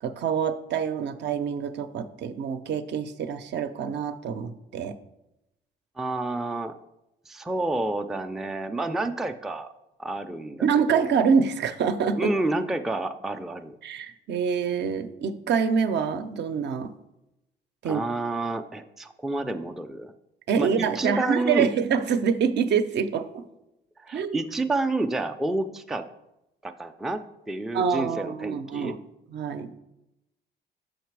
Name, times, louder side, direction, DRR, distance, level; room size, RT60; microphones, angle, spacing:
voice 1, 0.0-5.0 10.6-12.3 13.8-16.9 17.8-18.0 20.5-23.5 24.1-24.4 27.7-29.0 29.3-29.7, right 6 dB, 60° right, 9 dB, 0.5 m, -26 dB
voice 2, 6.0-6.7 7.3-9.7 10.0-10.7 10.9-11.0 12.2-13.8 17.8-20.1 20.6-21.7 24.0-26.1 26.6-28.9, right 2 dB, ahead, 6 dB, 0.4 m, -29 dB
6.5 x 5.1 x 4.7 m, 0.91 s
cardioid pair, 90°, 20 cm